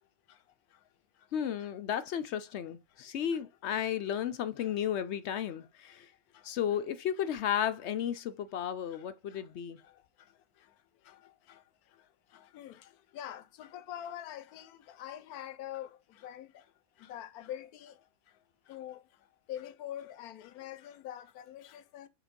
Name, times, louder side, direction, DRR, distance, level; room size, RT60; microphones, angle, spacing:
voice 1, 1.3-6.1 6.4-9.8, left 9 dB, 65° left, 0.7 m, -33 dB
voice 2, 13.1-14.7 15.0-15.9 16.2-16.5 17.1-17.9 18.7-19.0 19.5-22.1, left 11 dB, 85° left, 1.2 m, -43 dB
4.7 x 4.0 x 5.1 m
omnidirectional pair, 1.5 m